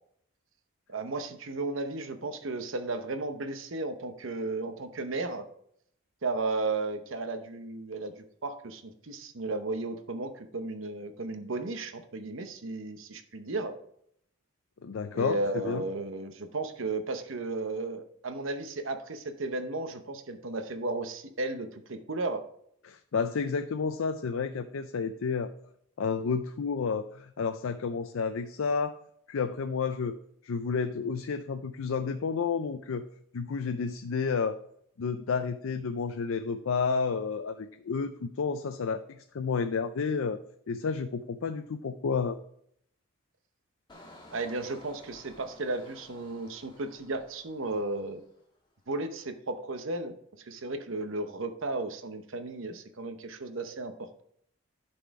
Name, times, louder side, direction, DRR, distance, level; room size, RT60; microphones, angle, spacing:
voice 1, 0.9-5.5 6.2-13.8 15.1-22.4 44.3-48.2 48.9-50.1 50.5-54.2, right 2 dB, 60° right, 8 dB, 0.8 m, -34 dB
voice 2, 14.8-15.4 15.6-15.8 22.8-25.5 26.0-29.0 29.3-30.1 30.4-33.0 33.3-34.6 35.0-40.4 40.7-42.4, left 5 dB, 70° left, 9 dB, 0.4 m, -31 dB
Engine, 43.9-48.6 48.9-49.3, left 1 dB, 20° left, 1.4 m, -54 dB
11.5 x 4.3 x 4.7 m, 0.69 s
head